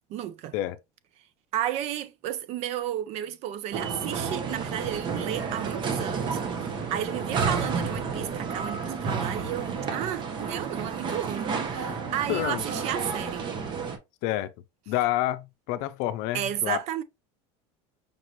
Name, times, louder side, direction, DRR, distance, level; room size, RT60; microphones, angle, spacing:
voice 1, 0.1-0.5 1.5-13.5 16.3-17.0, right 11 dB, 50° right, 0.5 m, -33 dB
sound 1, 3.7-14.0, right 5 dB, 35° right, 0.9 m, -31 dB
voice 2, 12.3-12.6 14.2-14.5 14.9-16.8, left 14 dB, 65° left, 0.5 m, -28 dB
5.3 x 2.5 x 3.0 m
supercardioid pair, 140°, 14 cm